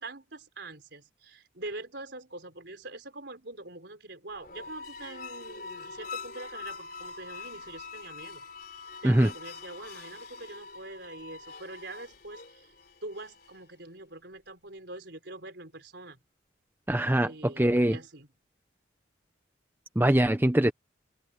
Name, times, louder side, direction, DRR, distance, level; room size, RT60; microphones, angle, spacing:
voice 1, 0.0-8.4 9.0-12.7 13.0-16.2 17.2-18.3, right 2 dB, 60° right, 4.5 m, -44 dB
sound 1, 4.3-13.7, left 4 dB, 50° left, 3.6 m, -44 dB
voice 2, 16.9-18.0 20.0-20.7, right 1 dB, 10° right, 0.7 m, -23 dB
head